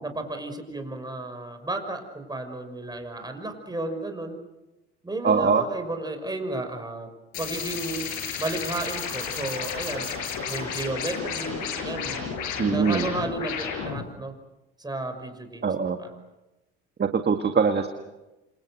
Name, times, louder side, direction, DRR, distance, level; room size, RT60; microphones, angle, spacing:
voice 1, 0.0-4.4 5.0-7.1 7.4-8.1 8.4-10.1 10.5-14.3 14.8-16.1, right 2 dB, 10° right, 6 dB, 6.0 m, -33 dB
voice 2, 5.2-5.6 12.6-13.1 15.6-16.0 17.0-17.9, right 5 dB, 30° right, 6 dB, 2.0 m, -22 dB
sound 1, 7.3-14.1, left 6 dB, 60° left, 6.5 m, -32 dB
28.5 x 27.5 x 6.4 m, 1.0 s
hypercardioid pair, 70°, 35 cm